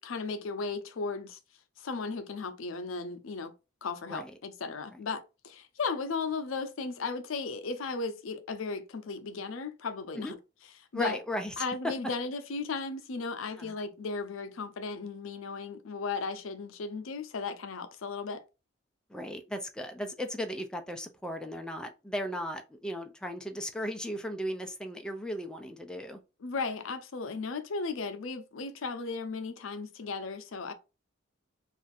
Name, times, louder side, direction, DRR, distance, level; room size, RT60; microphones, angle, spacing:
voice 1, 0.0-1.4 1.8-3.5 3.8-10.4 10.9-11.2 11.6-18.4 26.4-30.7, left 4 dB, 75° left, 0.5 m, -36 dB
voice 2, 10.9-11.9 13.6-13.8 19.1-26.2, equal, 5° left, 0.3 m, -36 dB
2.5 x 2.5 x 3.9 m
head